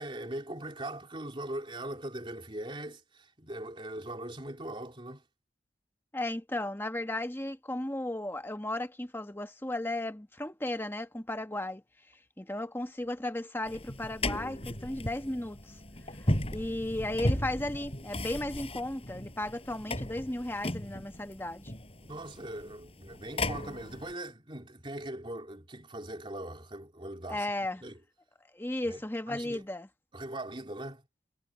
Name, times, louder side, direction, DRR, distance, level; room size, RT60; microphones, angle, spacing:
voice 1, 0.0-5.2 22.0-27.5 27.8-28.0 28.9-29.6 30.1-31.0, right 1 dB, 30° right, 3.2 m, -40 dB
voice 2, 6.1-11.8 12.4-15.8 16.2-21.7 27.3-27.8 28.5-29.9, left 1 dB, 10° left, 1.2 m, -35 dB
sound 1, 13.7-24.1, left 1 dB, 30° left, 6.9 m, -36 dB
head